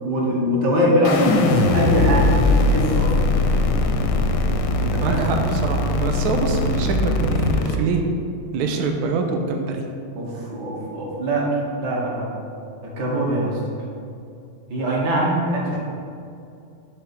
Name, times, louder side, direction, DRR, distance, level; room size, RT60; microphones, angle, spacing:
voice 1, 0.0-3.1 4.8-5.3 10.2-12.3 12.8-13.6 14.7-15.8, equal, 55° right, -3 dB, 1.8 m, -22 dB
sound 1, 1.0-7.8, left 2 dB, 75° left, 1.1 m, -20 dB
voice 2, 5.0-8.0 8.5-9.8, right 4 dB, 80° right, 3 dB, 0.8 m, -24 dB
7.9 x 3.5 x 5.9 m, 2.5 s
omnidirectional pair, 2.4 m